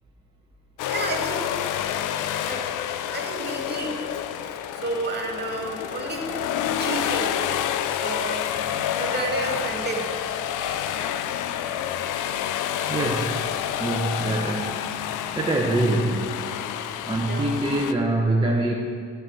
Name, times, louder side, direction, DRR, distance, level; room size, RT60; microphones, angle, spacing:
sound 1, 0.8-17.9, left 10 dB, 90° left, 0.6 m, -28 dB
voice 1, 0.9-1.5 2.5-2.6 3.1-4.0 4.4-7.4 7.9-8.5 9.0-10.2 17.3-17.5, right 2 dB, 35° right, 1 dB, 2.1 m, -31 dB
voice 2, 12.9-13.5 13.8-14.8 15.3-16.5 17.0-18.7, right 2 dB, 15° right, -1 dB, 0.9 m, -24 dB
13.0 x 4.8 x 7.6 m, 2.2 s
cardioid pair, 90°, 30 cm